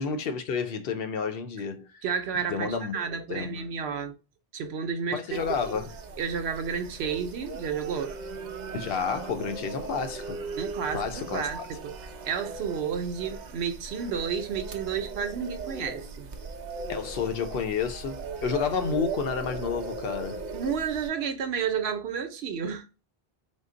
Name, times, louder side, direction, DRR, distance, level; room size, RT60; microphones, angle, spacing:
voice 1, 0.0-2.0 2.5-3.7 5.1-5.9 8.7-10.5 10.9-11.5 16.9-20.4, left 6 dB, 70° left, 0.8 m, -30 dB
voice 2, 2.0-4.1 4.5-5.4 5.7-5.8 6.2-8.2 10.6-11.9 12.2-16.3 20.5-22.9, right 6 dB, 85° right, 0.9 m, -31 dB
sound 1, 5.3-21.1, right 4 dB, 55° right, 0.6 m, -38 dB
3.7 x 2.0 x 3.7 m
omnidirectional pair, 1.0 m